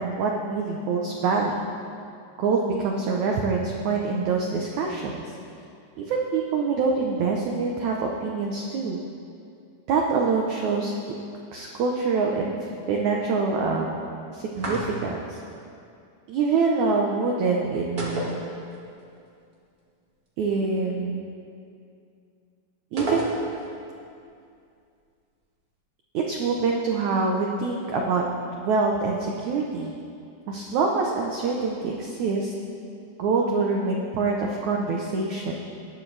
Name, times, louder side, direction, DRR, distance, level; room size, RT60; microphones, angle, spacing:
voice 1, 0.0-1.6 2.4-5.3 6.0-9.0 9.9-10.9 11.5-12.5 12.9-14.0 14.3-15.4 16.3-18.4 20.4-21.3 22.9-23.3 26.1-28.2 28.6-29.9 30.5-32.5 33.2-35.5, right 4 dB, 85° right, 0 dB, 1.6 m, -25 dB
sound 1, 14.5-15.3 18.0-19.0 19.3-19.4 23.0-23.8, right 2 dB, 40° right, 1.2 m, -30 dB
19.5 x 11.5 x 3.4 m, 2.5 s
omnidirectional pair, 4.6 m